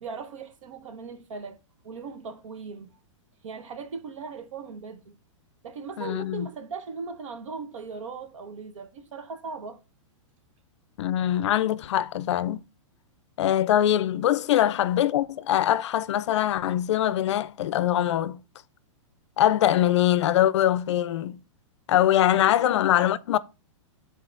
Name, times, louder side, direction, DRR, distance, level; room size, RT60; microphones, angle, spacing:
voice 1, 0.0-1.6 1.8-2.9 3.4-5.1 5.6-9.8 22.6-23.1, right 5 dB, 75° right, 1.1 m, -38 dB
voice 2, 6.0-6.5 11.0-12.7 13.4-18.4 19.4-21.4 21.9-23.4, left 12 dB, 60° left, 0.4 m, -23 dB
11.5 x 4.1 x 2.4 m
hypercardioid pair, 165°, 17 cm